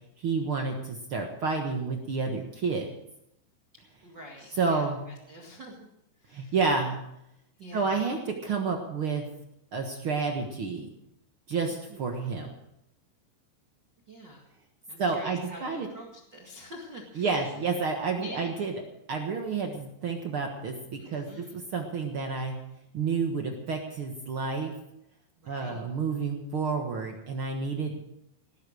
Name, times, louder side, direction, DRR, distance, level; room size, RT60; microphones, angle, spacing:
voice 1, 0.2-2.9 4.6-5.0 6.3-7.0 7.7-9.3 9.7-10.9 11.5-12.5 15.0-15.9 17.2-18.7 19.1-22.5 22.9-24.7 25.5-27.9, right 4 dB, 90° right, 2 dB, 1.1 m, -30 dB
voice 2, 4.0-5.9 6.2-6.6 7.6-8.0 11.7-12.0 14.1-14.5 14.9-17.5 18.2-18.5 20.9-21.6 25.4-25.8, equal, 40° right, -1 dB, 1.6 m, -47 dB
19.0 x 10.5 x 6.4 m, 0.81 s
omnidirectional pair, 4.9 m